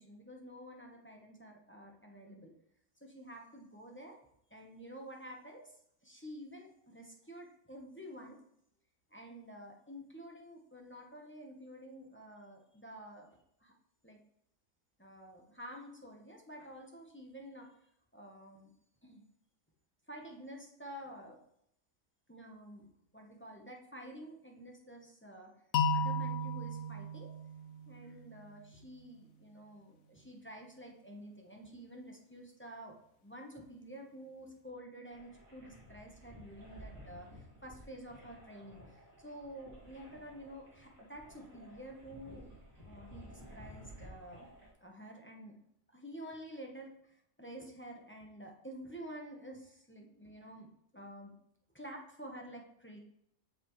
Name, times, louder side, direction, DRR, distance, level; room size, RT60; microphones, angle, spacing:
voice 1, 0.0-2.5 3.0-4.1 4.5-5.7 6.0-8.4 9.1-13.3 13.6-13.7 14.0-14.2 15.0-17.7 18.1-18.7 19.0-19.2 20.1-21.4 22.3-25.5 25.9-27.3 27.9-32.9 33.2-42.5 42.8-44.5 44.8-45.5 45.9-50.7 50.9-51.4 51.7-53.0, equal, 10° left, 0 dB, 0.8 m, -50 dB
sound 1, 25.7-28.6, left 2 dB, 75° left, 1.2 m, -35 dB
sound 2, 35.1-44.7, equal, 60° right, 2.7 m, -54 dB
7.9 x 6.8 x 3.1 m, 0.75 s
omnidirectional pair, 1.5 m